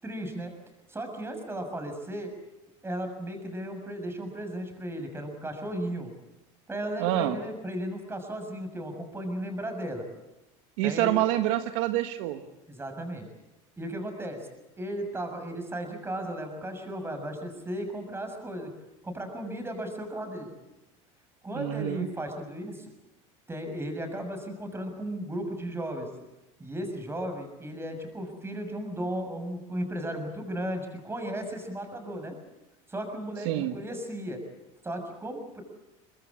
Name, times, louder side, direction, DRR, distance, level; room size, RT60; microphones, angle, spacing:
voice 1, 0.0-0.5 0.9-2.3 2.8-6.1 6.7-10.0 10.8-11.2 12.7-13.3 13.8-14.5 14.8-18.7 19.0-20.5 21.4-22.9 23.5-26.1 26.6-32.4 32.9-34.4 34.8-35.6, right 1 dB, 15° right, 5 dB, 6.4 m, -35 dB
voice 2, 7.0-7.4 10.8-12.4 21.5-22.1 33.4-33.7, right 14 dB, 75° right, 8 dB, 1.5 m, -27 dB
24.0 x 21.0 x 8.5 m, 0.96 s
supercardioid pair, 105°, 17 cm